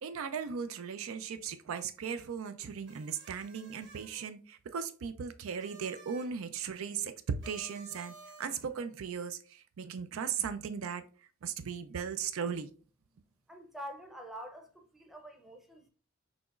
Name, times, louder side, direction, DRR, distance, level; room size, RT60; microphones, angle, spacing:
voice 1, 0.0-11.0 11.4-12.7, right 6 dB, 75° right, 0.4 m, -37 dB
sound 1, 2.8-4.3 5.5-6.4 7.4-8.8, right 3 dB, 60° right, 1.1 m, -54 dB
voice 2, 13.5-15.9, equal, ahead, 0.6 m, -46 dB
6.1 x 2.9 x 2.4 m
head